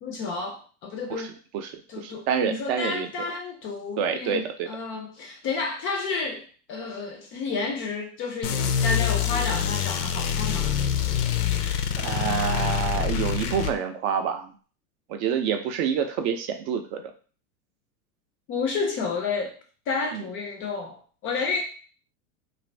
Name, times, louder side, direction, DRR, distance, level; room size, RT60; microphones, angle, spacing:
voice 1, 0.0-1.4 1.9-6.4 6.7-10.8 18.5-19.6 19.9-21.6, left 4 dB, 30° left, 3 dB, 0.4 m, -31 dB
voice 2, 1.1-3.1 4.0-4.7 12.0-14.5 15.1-17.0 20.1-20.2, right 7 dB, 50° right, 6 dB, 0.5 m, -27 dB
sound 1, 8.4-13.7, left 8 dB, 85° left, 0.6 m, -25 dB
2.6 x 2.5 x 3.2 m, 0.40 s
supercardioid pair, 125°, 44 cm